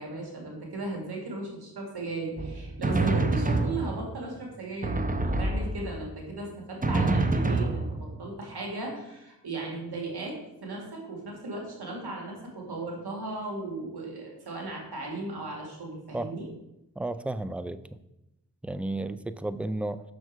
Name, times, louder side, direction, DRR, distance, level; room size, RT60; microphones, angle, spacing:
voice 1, 0.0-16.5, right 2 dB, 75° right, -1 dB, 2.2 m, -36 dB
Drum, 2.4-4.3 4.8-6.1 6.8-8.3, right 2 dB, 20° right, 0.8 m, -27 dB
voice 2, 17.0-17.8 18.6-20.0, right 2 dB, 5° right, 13 dB, 0.3 m, -32 dB
6.4 x 6.1 x 4.6 m, 0.92 s
cardioid pair, 45°, 40 cm